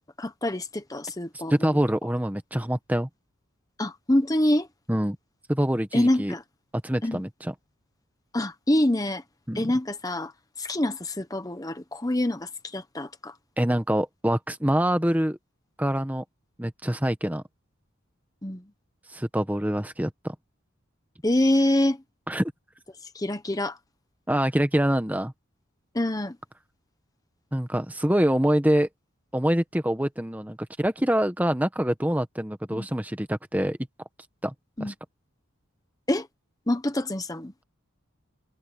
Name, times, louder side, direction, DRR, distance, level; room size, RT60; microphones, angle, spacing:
voice 1, 0.2-1.7 3.8-4.7 5.9-6.4 7.0-7.2 8.3-9.2 9.5-10.3 10.6-13.3 18.4-18.6 21.2-22.0 23.1-23.8 25.9-26.4 32.7-32.9 34.8-34.9 36.1-36.3 36.7-37.5, left 1 dB, 15° left, 0.9 m, -25 dB
voice 2, 1.5-3.1 4.9-5.2 5.5-6.3 6.8-7.5 9.5-9.6 13.6-15.4 15.8-16.2 16.6-17.4 19.1-20.3 22.3-22.5 24.3-25.3 27.5-28.9 29.3-33.8 34.4-34.5 34.8-34.9, equal, 5° right, 1.1 m, -25 dB
head